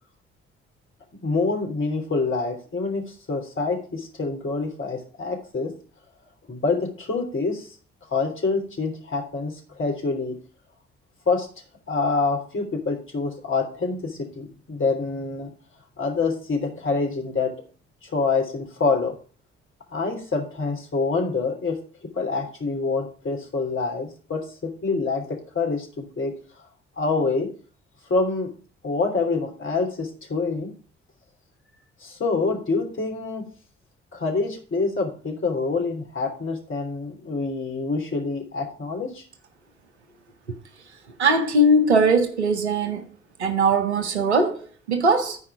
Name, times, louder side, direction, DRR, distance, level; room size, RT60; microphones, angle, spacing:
voice 1, 1.2-5.7 6.5-7.7 8.1-10.3 11.3-11.5 11.9-15.5 16.0-17.5 18.0-19.1 19.9-21.8 22.1-26.3 27.0-27.5 28.1-28.5 28.8-30.7 32.0-33.4 34.1-39.2, left 4 dB, 40° left, 3.2 m, -26 dB
voice 2, 41.2-43.1 43.4-45.4, right 2 dB, 90° right, 0.8 m, -20 dB
13.5 x 4.8 x 4.8 m
figure-of-eight pair, 40°, 33 cm